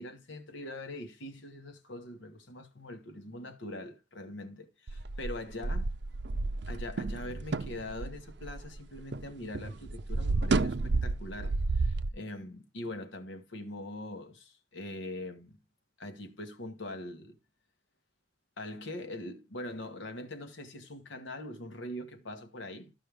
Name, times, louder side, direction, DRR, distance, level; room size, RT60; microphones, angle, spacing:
voice 1, 0.0-5.9 6.7-15.6 16.0-17.4 18.6-22.9, left 1 dB, 80° left, 1.4 m, -42 dB
sound 1, 4.9-9.3 9.5-12.1, right 3 dB, 60° right, 0.5 m, -31 dB
14.0 x 5.5 x 3.4 m
head